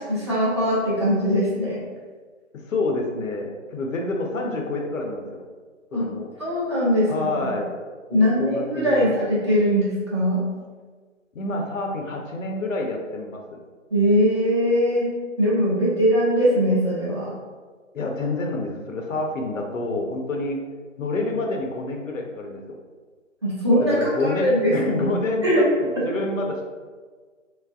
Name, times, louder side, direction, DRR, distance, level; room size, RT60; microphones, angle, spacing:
voice 1, 0.0-1.8 5.9-6.1 6.4-7.4 8.1-10.4 13.9-15.1 15.4-17.3 23.4-25.1 25.4-25.7 25.9-26.0, equal, 20° right, -8 dB, 0.5 m, -21 dB
voice 2, 2.7-5.3 5.9-6.3 7.1-7.7 8.1-9.1 11.3-13.6 17.9-20.6 21.0-22.7 23.9-26.6, left 2 dB, 80° left, 1 dB, 0.8 m, -28 dB
3.3 x 3.2 x 2.3 m, 1.4 s
figure-of-eight pair, 150°, 39 cm